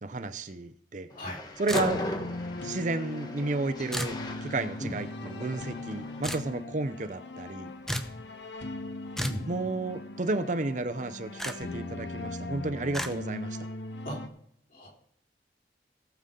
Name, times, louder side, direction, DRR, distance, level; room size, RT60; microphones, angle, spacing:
voice 1, 0.0-1.1 1.6-2.0 2.6-4.1 4.4-7.7 9.5-13.6, right 2 dB, 45° right, 11 dB, 0.6 m, -32 dB
voice 2, 1.1-1.4 4.8-4.9 9.2-9.5 14.0-14.3 14.7-14.9, equal, 50° left, -3 dB, 4.3 m, -37 dB
Train, 1.1-6.4, left 1 dB, 20° left, 1.2 m, -38 dB
sound 1, 1.7-14.3, left 2 dB, 75° left, 1.0 m, -40 dB
sound 2, 1.7-2.2 3.9-4.2 6.2-6.5 7.9-8.2 9.1-9.5 11.4-11.5 12.9-13.1, equal, ahead, 0.7 m, -33 dB
18.5 x 7.0 x 3.8 m, 0.69 s
head